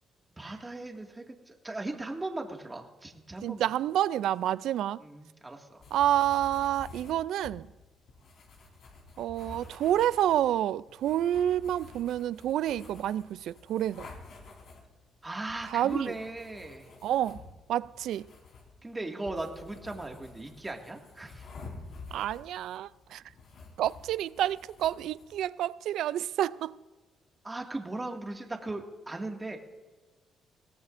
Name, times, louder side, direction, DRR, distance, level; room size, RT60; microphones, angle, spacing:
voice 1, 0.4-3.7 5.0-5.9 15.2-16.9 18.8-21.5 27.4-29.6, right 2 dB, 20° right, 2.0 m, -38 dB
voice 2, 3.4-5.0 5.9-7.7 9.2-14.1 15.7-16.1 17.0-17.4 17.7-18.3 22.1-23.2 23.8-26.7, right 12 dB, 80° right, 0.3 m, -29 dB
sound 1, 5.8-25.4, left 3 dB, 65° left, 3.8 m, -50 dB
21.5 x 17.0 x 2.6 m
cardioid pair, 90°, 0 cm